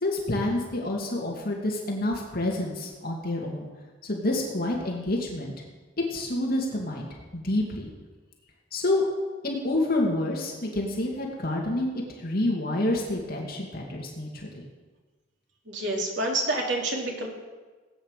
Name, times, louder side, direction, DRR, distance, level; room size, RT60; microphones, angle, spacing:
voice 1, 0.0-3.7 4.0-5.5 6.1-7.9 8.7-9.0 9.4-14.5, left 1 dB, 55° left, -1 dB, 2.6 m, -28 dB
voice 2, 15.7-17.3, right 2 dB, 70° right, 0 dB, 3.2 m, -28 dB
18.0 x 9.4 x 6.8 m, 1.3 s
head